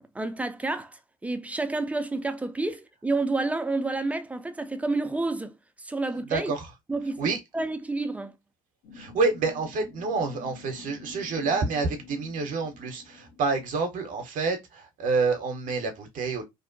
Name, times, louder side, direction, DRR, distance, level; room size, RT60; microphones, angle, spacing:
voice 1, 0.0-6.5 6.9-8.3, right 2 dB, 10° right, 0.3 m, -30 dB
voice 2, 6.3-6.7 7.2-7.4 8.9-16.4, right 4 dB, 45° right, 0.6 m, -28 dB
sound 1, 8.8-13.8, left 4 dB, 65° left, 0.7 m, -47 dB
2.5 x 2.1 x 2.5 m
hypercardioid pair, 60°, 18 cm